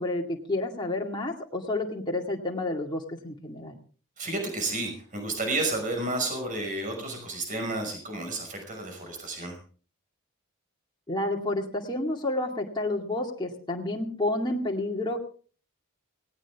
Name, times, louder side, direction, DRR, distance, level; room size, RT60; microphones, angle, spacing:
voice 1, 0.0-3.8 11.1-15.2, left 2 dB, 20° left, -1 dB, 2.3 m, -30 dB
voice 2, 4.2-9.6, right 2 dB, 40° right, 4 dB, 5.6 m, -31 dB
18.5 x 18.0 x 3.6 m, 0.40 s
head